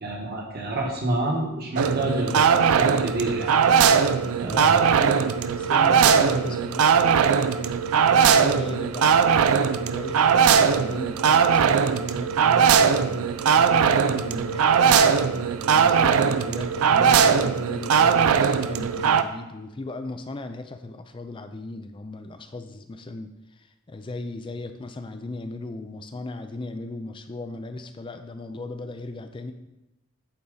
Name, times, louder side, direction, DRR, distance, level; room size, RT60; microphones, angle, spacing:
voice 1, 0.0-3.5 4.4-4.9, right 1 dB, 45° right, -1 dB, 1.3 m, -28 dB
sound 1, 1.8-19.2, right 6 dB, 75° right, 0.4 m, -20 dB
voice 2, 4.5-15.0 15.6-29.5, left 2 dB, 25° left, 8 dB, 0.4 m, -37 dB
8.6 x 4.1 x 3.9 m, 0.94 s
head